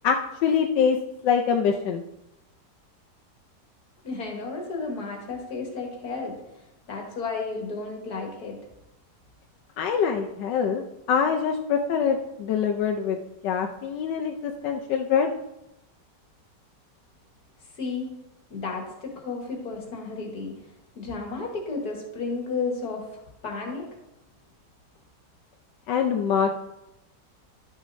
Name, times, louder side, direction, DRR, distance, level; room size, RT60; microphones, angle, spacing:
voice 1, 0.4-1.0 1.2-2.0 9.8-10.8 11.1-15.3 25.9-26.5, left 7 dB, 85° left, 3 dB, 1.3 m, -24 dB
voice 2, 4.0-6.4 6.9-8.6 17.8-18.1 18.5-20.7 21.0-23.9, left 4 dB, 65° left, 1 dB, 1.8 m, -33 dB
12.0 x 6.3 x 2.6 m, 0.89 s
omnidirectional pair, 1.8 m